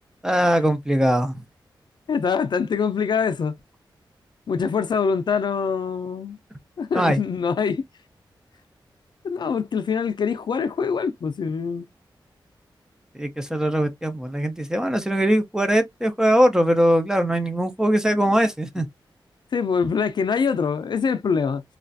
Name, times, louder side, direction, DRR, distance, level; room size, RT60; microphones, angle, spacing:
voice 1, 0.2-1.4 6.9-7.2 13.1-18.9, equal, 5° right, 0.5 m, -21 dB
voice 2, 2.1-3.6 4.5-6.4 6.8-7.8 9.2-11.9 19.5-21.6, left 6 dB, 60° left, 0.5 m, -24 dB
3.1 x 2.4 x 2.5 m
wide cardioid pair, 125°, 8 cm